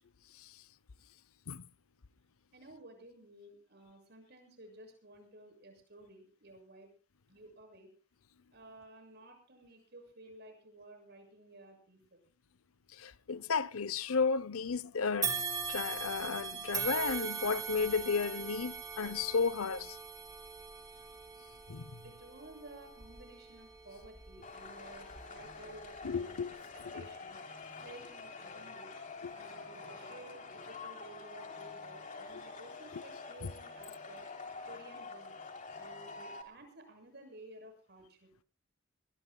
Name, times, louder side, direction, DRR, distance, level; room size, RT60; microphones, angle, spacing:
voice 1, 2.5-6.9 7.3-7.9 8.5-12.2 22.0-26.5 26.7-27.4 27.8-28.9 29.3-34.2 34.7-35.4 35.8-38.3, right 2 dB, 50° right, 7.0 m, -54 dB
voice 2, 13.0-20.0 21.7-22.0 26.0-26.5 26.8-26.9 29.2-29.3 32.9-33.0 33.4-33.5, left 5 dB, 85° left, 0.7 m, -33 dB
sound 1, 15.2-24.5 25.0-25.2 26.2-26.3, right 6 dB, 15° right, 3.5 m, -40 dB
sound 2, 24.4-36.4, left 4 dB, 35° left, 3.3 m, -47 dB
22.5 x 22.0 x 2.3 m
head